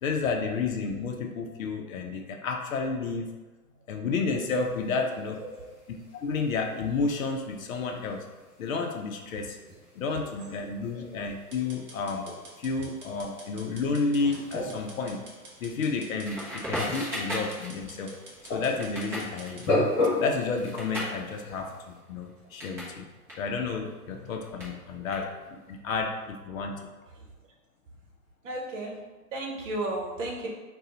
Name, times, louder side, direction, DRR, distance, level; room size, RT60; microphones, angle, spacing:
voice 1, 0.0-3.3 3.9-5.4 6.1-8.2 8.6-9.6 9.9-12.2 12.6-15.2 15.6-18.1 18.5-19.7 20.2-23.1 23.4-25.3 25.7-26.9, left 4 dB, 60° left, 3 dB, 0.6 m, -31 dB
sound 1, 4.4-22.0, left 2 dB, 30° left, 1.3 m, -37 dB
voice 2, 5.4-5.8 10.9-11.2 25.2-25.3 27.1-27.3 28.4-29.0 29.3-30.5, right 2 dB, 50° right, -1 dB, 1.0 m, -34 dB
sound 2, 11.5-19.7, right 2 dB, 25° right, 1.0 m, -49 dB
Crackle, 16.2-23.0 23.2-25.7, equal, 5° right, 0.6 m, -37 dB
3.9 x 2.3 x 3.8 m, 1.2 s
hypercardioid pair, 125°, 47 cm